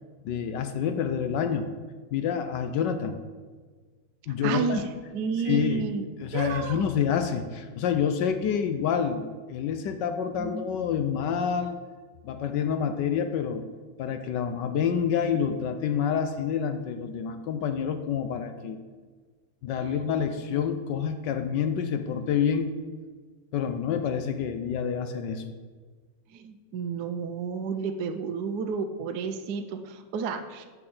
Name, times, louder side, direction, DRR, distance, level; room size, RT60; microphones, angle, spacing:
voice 1, 0.2-1.7 2.1-3.2 4.3-4.9 5.4-5.8 6.2-11.8 12.2-13.6 14.0-18.8 19.6-22.7 23.5-25.5, left 7 dB, 75° left, 8 dB, 1.2 m, -28 dB
voice 2, 4.4-4.9 5.1-6.1 6.3-6.9 10.3-10.7 19.8-20.0 26.3-30.7, right 6 dB, 70° right, 7 dB, 1.1 m, -31 dB
7.7 x 5.9 x 7.8 m, 1.5 s
omnidirectional pair, 2.0 m